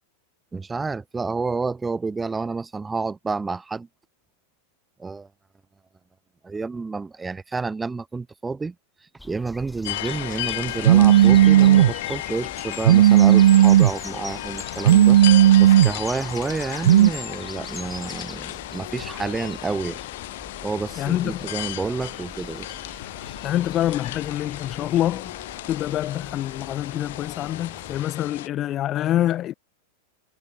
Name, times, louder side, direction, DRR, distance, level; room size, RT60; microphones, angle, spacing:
voice 1, 0.5-3.9 5.0-5.3 6.4-8.7 9.2-15.2 15.6-20.0 20.6-22.8, right 4 dB, 10° right, 6.6 m, -29 dB
sound 1, 9.2-28.1, left 1 dB, 5° left, 4.0 m, -43 dB
sound 2, 9.8-28.5, left 16 dB, 55° left, 6.1 m, -34 dB
Telephone, 10.8-11.9 12.8-13.9 14.8-15.9 16.8-17.1, right 12 dB, 60° right, 0.4 m, -13 dB
voice 2, 21.0-21.5 23.4-25.4 25.7-29.5, left 12 dB, 30° left, 1.9 m, -26 dB
figure-of-eight pair, 90°, 0 cm